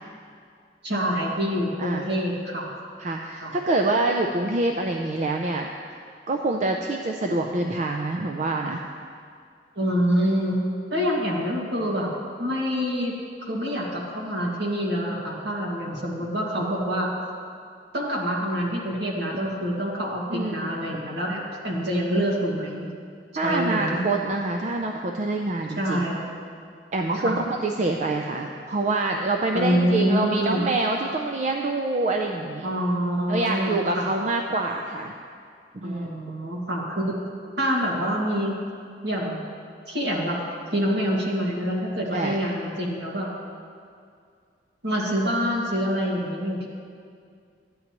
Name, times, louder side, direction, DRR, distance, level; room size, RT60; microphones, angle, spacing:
voice 1, 0.8-2.7 3.4-3.5 9.8-10.6 10.9-12.1 12.4-13.1 13.5-17.1 17.9-20.2 20.5-22.9 23.4-24.0 25.8-26.3 27.2-27.4 29.5-30.6 32.6-34.1 35.8-37.3 37.6-38.6 39.0-39.4 39.9-40.4 40.7-43.3 44.8-46.7, equal, 70° right, -3 dB, 1.9 m, -26 dB
voice 2, 3.0-5.7 6.3-8.8 20.3-21.0 23.4-26.1 26.9-32.7 33.3-35.1 35.8-36.1 42.1-42.4, right 2 dB, 40° right, 2 dB, 0.4 m, -26 dB
13.0 x 9.4 x 3.0 m, 2.3 s
head